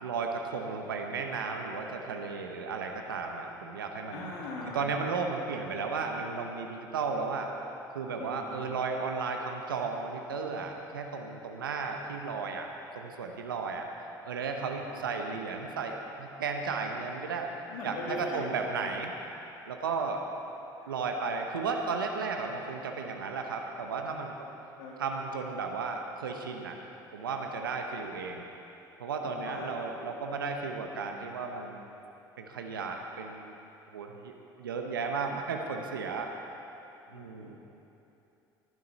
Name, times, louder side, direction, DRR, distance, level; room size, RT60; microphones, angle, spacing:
voice 1, 0.0-4.3 4.7-7.5 7.9-12.7 12.9-13.9 14.2-17.5 17.8-19.1 19.7-20.2 20.9-24.3 25.0-26.8 27.1-28.5 29.0-31.8 32.4-33.5 33.9-34.3 34.6-36.3 37.1-37.6, right 4 dB, 90° right, 3 dB, 0.8 m, -34 dB
voice 2, 4.1-4.8 8.2-8.6 14.5-15.0 17.7-18.8 20.8-20.9 22.8-23.0 24.8-25.0 29.2-29.7 30.3-30.4 37.1-37.6, left 2 dB, 75° left, -4 dB, 2.1 m, -41 dB
15.0 x 11.5 x 4.1 m, 2.9 s
hypercardioid pair, 65°, 11 cm